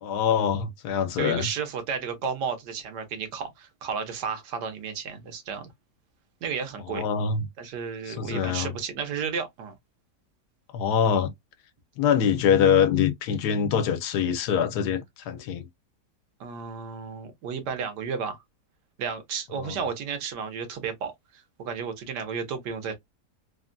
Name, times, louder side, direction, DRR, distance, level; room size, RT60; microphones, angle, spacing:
voice 1, 0.0-1.5 6.9-7.5 8.1-8.7 10.7-11.3 12.0-15.7 19.6-19.7, left 7 dB, 80° left, 1.2 m, -24 dB
voice 2, 1.2-5.7 6.4-7.0 7.6-9.8 16.4-18.4 19.0-23.0, right 6 dB, 85° right, 1.5 m, -33 dB
3.3 x 2.2 x 2.4 m
omnidirectional pair, 1.8 m